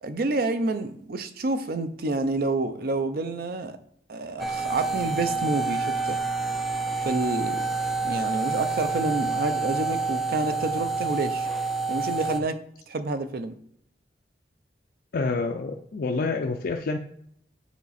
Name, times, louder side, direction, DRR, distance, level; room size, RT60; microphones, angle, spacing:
voice 1, 0.0-3.8 4.1-6.2 7.0-7.7 8.0-11.5 11.9-13.6, right 2 dB, 60° right, 0.6 m, -28 dB
sound 1, 4.4-12.4, right 3 dB, ahead, 0.4 m, -28 dB
voice 2, 15.1-17.0, left 3 dB, 55° left, 0.5 m, -28 dB
7.2 x 4.1 x 4.1 m
head